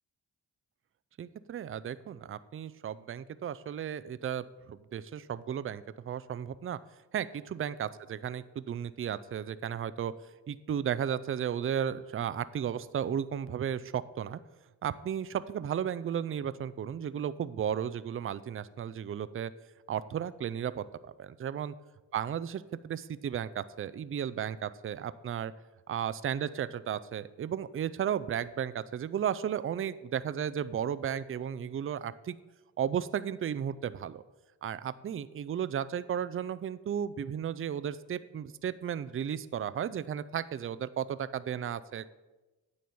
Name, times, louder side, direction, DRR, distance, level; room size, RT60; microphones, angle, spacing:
voice 1, 1.2-6.8 7.1-10.1 10.5-14.4 14.8-19.5 19.9-20.8 21.2-21.7 22.1-25.5 25.9-32.4 32.8-34.2 34.6-42.1, right 9 dB, 35° right, 15 dB, 0.4 m, -34 dB
9.3 x 4.3 x 6.9 m, 1.1 s
cardioid pair, 70°, 39 cm